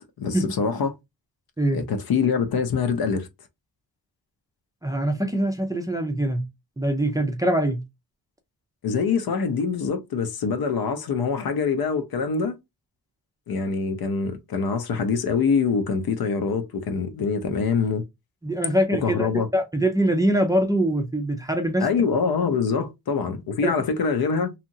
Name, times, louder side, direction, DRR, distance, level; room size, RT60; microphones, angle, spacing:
voice 1, 0.2-1.0 1.7-3.3 8.8-12.6 13.5-18.0 18.9-19.5 21.8-24.5, left 5 dB, 75° left, 0.7 m, -24 dB
voice 2, 4.8-6.5 6.8-7.8 18.4-21.9 23.6-23.7, right 1 dB, 10° right, 0.4 m, -23 dB
2.8 x 2.4 x 2.6 m
wide cardioid pair, 165°, 37 cm